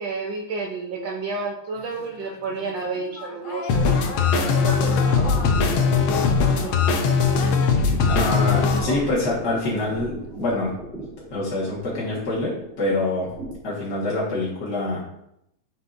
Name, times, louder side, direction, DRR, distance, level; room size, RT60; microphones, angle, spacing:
voice 1, 0.0-5.9 6.5-7.2 8.8-9.0, right 4 dB, 70° right, -1 dB, 1.4 m, -31 dB
sound 1, 1.7-9.4 9.7-10.4, left 5 dB, 70° left, 1.3 m, -38 dB
sound 2, 3.7-8.8, left 5 dB, 85° left, 1.6 m, -20 dB
sound 3, 4.3-13.5, right 2 dB, 45° right, 2.3 m, -39 dB
voice 2, 8.1-10.7 11.3-13.3 13.6-15.0, left 2 dB, 55° left, -7 dB, 2.2 m, -25 dB
9.3 x 5.6 x 2.6 m, 0.77 s
omnidirectional pair, 2.2 m